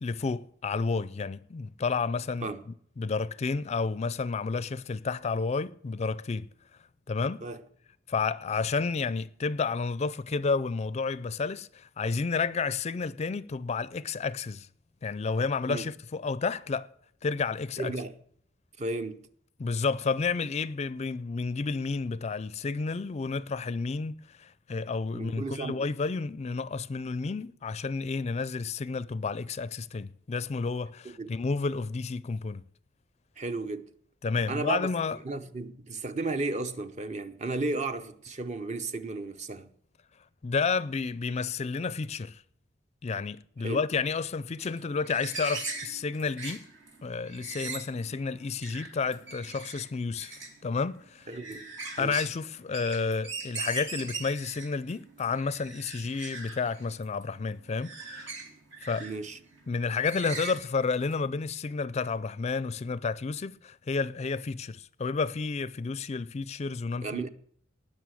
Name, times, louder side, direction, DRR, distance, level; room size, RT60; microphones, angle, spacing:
voice 1, 0.0-2.5 3.0-6.5 7.1-7.4 8.1-14.7 15.0-16.9 17.2-17.9 19.6-32.6 34.2-35.2 40.4-42.4 43.0-46.7 47.0-51.3 52.0-58.3 58.8-59.1 59.7-67.2, left 4 dB, 35° left, 0.4 m, -31 dB
voice 2, 17.8-18.1 18.8-19.3 25.1-25.9 31.0-31.3 33.4-33.9 34.5-34.9 35.2-39.7 43.6-43.8 51.3-51.7 52.0-52.2 59.0-59.4 67.0-67.3, right 3 dB, 40° right, 0.8 m, -34 dB
sound 1, 44.6-61.2, right 4 dB, 70° right, 3.0 m, -41 dB
19.0 x 6.5 x 6.4 m
head